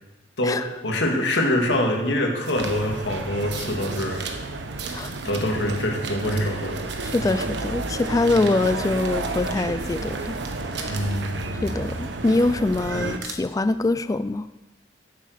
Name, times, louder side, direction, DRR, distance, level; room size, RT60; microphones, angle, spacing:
voice 1, 0.4-4.2 5.2-6.8 7.2-7.4 10.9-11.6 12.9-13.0, left 1 dB, 80° left, 2 dB, 2.0 m, -25 dB
sound 1, 2.4-2.7 3.4-4.3 4.7-9.5 9.8-12.8 13.1-13.3, right 5 dB, 70° right, 1.4 m, -39 dB
sound 2, 2.6-13.2, right 2 dB, 85° right, 1.0 m, -31 dB
voice 2, 7.0-10.4 10.8-11.0 11.6-14.5, left 2 dB, 20° left, 13 dB, 0.3 m, -24 dB
10.5 x 8.2 x 6.5 m, 1.1 s
head